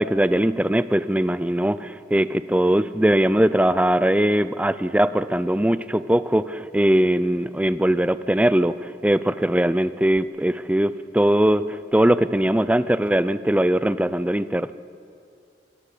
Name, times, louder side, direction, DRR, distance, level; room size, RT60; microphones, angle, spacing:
voice 1, 0.0-14.7, right 1 dB, 5° right, 14 dB, 0.4 m, -20 dB
24.5 x 17.5 x 8.4 m, 2.5 s
head